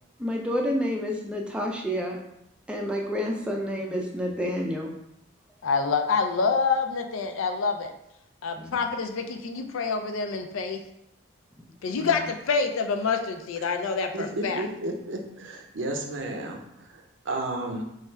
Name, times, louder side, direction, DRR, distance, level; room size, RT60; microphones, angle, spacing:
voice 1, 0.2-2.2 2.7-4.9 8.6-8.7 11.6-11.7 11.9-12.1, equal, 5° right, 0 dB, 0.4 m, -29 dB
voice 2, 5.6-7.9 8.4-10.8 11.8-14.7, left 5 dB, 85° left, 6 dB, 0.4 m, -27 dB
voice 3, 14.1-17.8, right 1 dB, 65° right, 3 dB, 0.6 m, -33 dB
3.2 x 2.3 x 4.4 m, 0.80 s
head